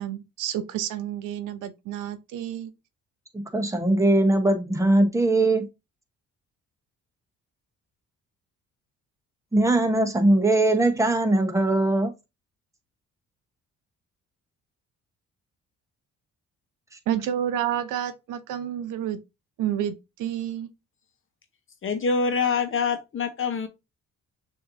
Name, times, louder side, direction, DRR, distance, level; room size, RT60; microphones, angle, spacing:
voice 1, 0.0-2.7 17.1-19.2 19.6-20.7, right 10 dB, 90° right, 0.7 m, -29 dB
voice 2, 3.3-5.7 9.5-12.1, right 2 dB, 10° right, 1.0 m, -21 dB
voice 3, 21.8-23.7, left 5 dB, 45° left, 0.9 m, -25 dB
6.5 x 2.8 x 2.6 m
cardioid pair, 90°, 30 cm